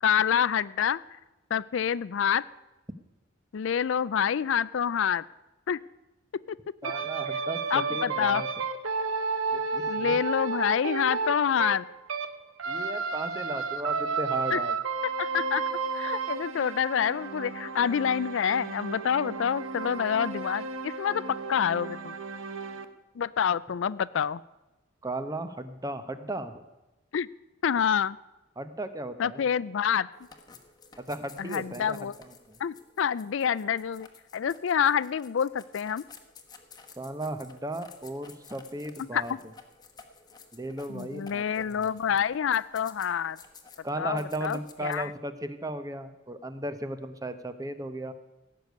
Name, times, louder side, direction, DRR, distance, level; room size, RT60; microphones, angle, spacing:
voice 1, 0.0-1.0 1.5-2.5 3.5-5.2 5.7-5.8 6.5-6.6 6.8-6.9 7.7-8.4 9.9-11.9 14.5-14.6 15.0-15.6 15.9-22.2 23.2-24.4 27.1-27.3 27.6-28.2 29.2-30.1 31.4-32.1 32.6-34.1 34.3-36.0 39.1-39.2 40.9-43.4 44.0-45.1, left 8 dB, 65° left, 19 dB, 0.4 m, -27 dB
voice 2, 6.8-8.5 9.5-10.2 12.7-14.7 25.0-26.6 28.6-29.5 31.0-32.6 37.0-39.3 40.5-41.9 43.8-48.1, right 1 dB, 15° right, 10 dB, 0.9 m, -36 dB
sound 1, 6.8-12.3 12.6-22.8, right 4 dB, 85° right, 1.0 m, -32 dB
sound 2, 30.1-45.0, left 5 dB, 20° left, 1.2 m, -53 dB
16.5 x 6.8 x 9.3 m, 1.0 s
head